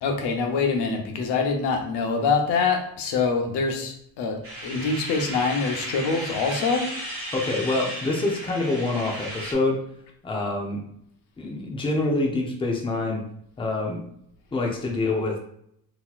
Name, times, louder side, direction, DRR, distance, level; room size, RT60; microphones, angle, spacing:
voice 1, 0.0-4.4 4.6-6.9, left 4 dB, 85° left, 3 dB, 0.8 m, -25 dB
sound 1, 4.4-9.5, right 1 dB, 35° right, 1.2 m, -35 dB
voice 2, 7.3-9.8 10.2-10.8 11.4-13.2 13.6-14.0 14.5-15.4, left 2 dB, 15° left, 0 dB, 0.6 m, -26 dB
3.8 x 2.9 x 2.4 m, 0.71 s
cardioid pair, 125°, 39 cm